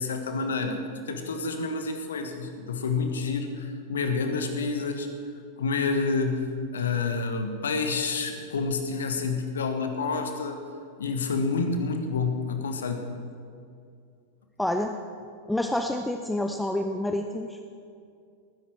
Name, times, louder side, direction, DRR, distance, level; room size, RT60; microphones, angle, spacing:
voice 1, 0.0-5.1 5.6-10.6 11.0-13.1, left 4 dB, 65° left, 6 dB, 1.4 m, -28 dB
voice 2, 14.6-14.9 15.5-17.6, left 1 dB, 5° left, 5 dB, 0.6 m, -28 dB
19.0 x 10.5 x 4.6 m, 2.4 s
figure-of-eight pair, 90°, 0 cm